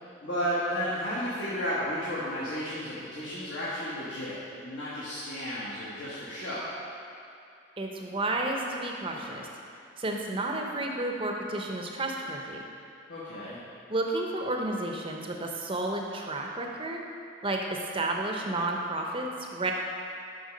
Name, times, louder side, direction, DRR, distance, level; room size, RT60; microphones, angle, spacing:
voice 1, 0.2-6.7 9.1-9.2 13.1-13.6, equal, 65° left, -9 dB, 1.4 m, -33 dB
voice 2, 7.8-9.5 10.0-12.6 13.9-17.0 17.4-19.7, right 2 dB, 25° right, 1 dB, 0.6 m, -31 dB
6.5 x 5.6 x 5.2 m, 2.6 s
head